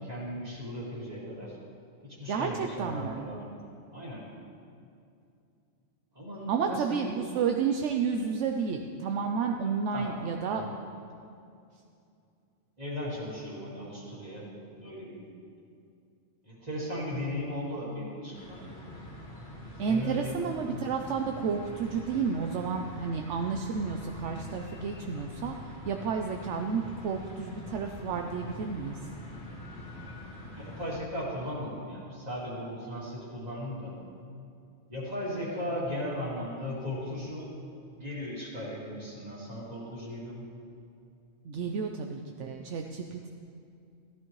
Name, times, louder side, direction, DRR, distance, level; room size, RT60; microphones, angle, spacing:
voice 1, 0.0-1.6 2.0-3.5 3.9-4.3 6.1-7.1 9.9-10.8 12.8-14.5 14.8-15.2 16.4-18.6 19.9-20.4 30.5-33.9 34.9-37.5 37.9-40.4, left 1 dB, 35° right, -6 dB, 2.9 m, -37 dB
voice 2, 2.3-3.3 6.5-10.6 19.8-25.6 25.8-29.0 41.4-43.3, right 6 dB, 75° right, 3 dB, 0.9 m, -31 dB
sound 1, 18.3-31.0, left 1 dB, 45° left, 1.5 m, -44 dB
14.0 x 13.0 x 3.1 m, 2.5 s
omnidirectional pair, 1.3 m